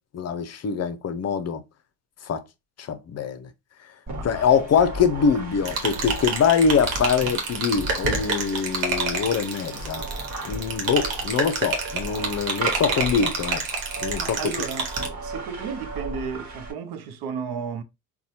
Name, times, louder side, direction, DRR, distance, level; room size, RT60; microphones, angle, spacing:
voice 1, 0.1-1.6 2.2-2.4 2.8-3.5 4.2-10.0 10.4-13.6 14.0-14.4, left 6 dB, 40° left, 0.6 m, -23 dB
sound 1, 4.1-16.7, right 1 dB, 45° right, 1.4 m, -35 dB
sound 2, 5.7-15.1, right 4 dB, 85° right, 1.1 m, -29 dB
voice 2, 14.2-14.9 15.2-17.8, right 6 dB, 60° right, 0.7 m, -33 dB
4.1 x 2.3 x 2.6 m
hypercardioid pair, 70°, 41 cm